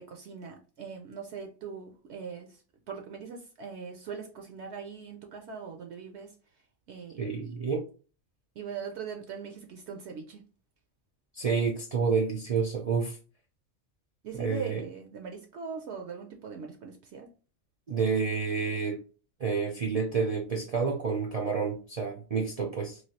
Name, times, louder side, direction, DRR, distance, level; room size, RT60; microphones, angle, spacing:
voice 1, 0.0-2.6 2.9-6.3 6.9-7.5 8.6-10.4 14.2-17.3, right 6 dB, 65° right, 0.8 m, -41 dB
voice 2, 7.2-7.8 11.3-13.2 14.4-14.8 17.9-19.0 19.4-23.0, right 5 dB, 50° right, 0.4 m, -29 dB
3.1 x 2.3 x 2.8 m
omnidirectional pair, 1.3 m